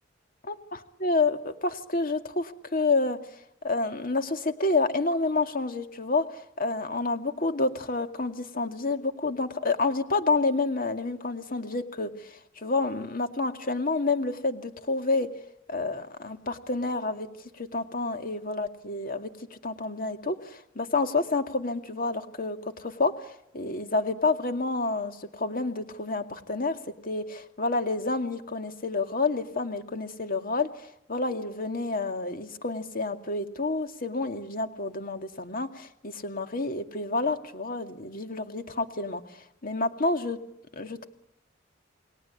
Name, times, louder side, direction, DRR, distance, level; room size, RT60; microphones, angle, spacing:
voice 1, 1.0-3.2 3.6-15.3 15.7-17.3 17.6-26.8 27.0-39.2 39.6-40.4 40.8-41.1, left 3 dB, 50° left, 7 dB, 2.2 m, -29 dB
30.0 x 21.0 x 8.5 m, 0.83 s
head